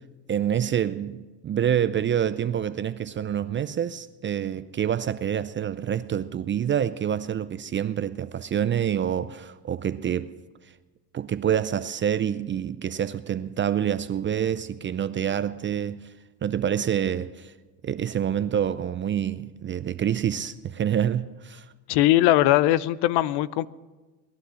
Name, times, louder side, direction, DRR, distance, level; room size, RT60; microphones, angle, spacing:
voice 1, 0.3-10.4 11.1-16.1 16.4-17.5 17.8-21.7, right 9 dB, 25° right, 0.4 m, -27 dB
voice 2, 21.9-23.7, left 15 dB, 55° left, 0.7 m, -20 dB
19.0 x 11.5 x 6.4 m
hypercardioid pair, 80°, 50 cm